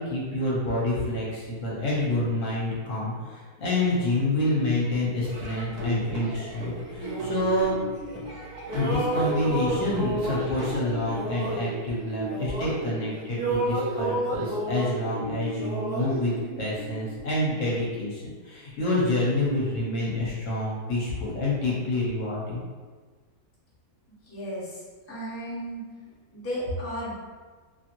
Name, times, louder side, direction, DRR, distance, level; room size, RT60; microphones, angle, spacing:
voice 1, 0.0-7.7 8.7-22.6, left 1 dB, 60° left, -5 dB, 1.0 m, -28 dB
Laughter / Drum, 5.2-11.2, right 1 dB, 75° right, 1.2 m, -37 dB
sound 1, 7.0-8.3 8.6-13.0 13.3-17.1, right 1 dB, 60° right, 0.4 m, -31 dB
voice 2, 24.2-24.8 25.1-25.8 26.3-27.1, equal, 15° left, -9 dB, 0.5 m, -34 dB
2.8 x 2.7 x 2.5 m, 1.4 s
omnidirectional pair, 1.6 m